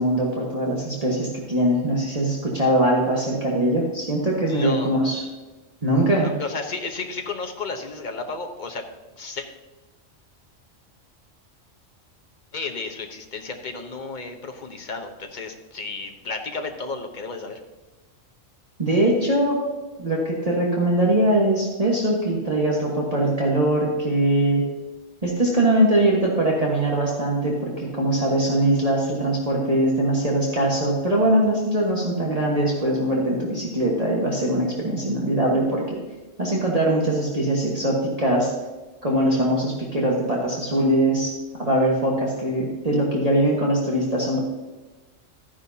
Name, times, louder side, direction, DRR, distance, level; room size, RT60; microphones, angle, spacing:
voice 1, 0.0-5.2 5.8-6.3 18.8-19.6 20.0-24.7 25.2-36.0 36.4-38.5 39.0-41.3 41.6-44.4, right 1 dB, 30° right, -4 dB, 1.5 m, -22 dB
voice 2, 4.5-4.9 6.2-8.8 9.1-9.5 12.5-17.6, left 4 dB, 40° left, 4 dB, 1.1 m, -33 dB
13.5 x 10.0 x 2.8 m, 1.2 s
omnidirectional pair, 1.3 m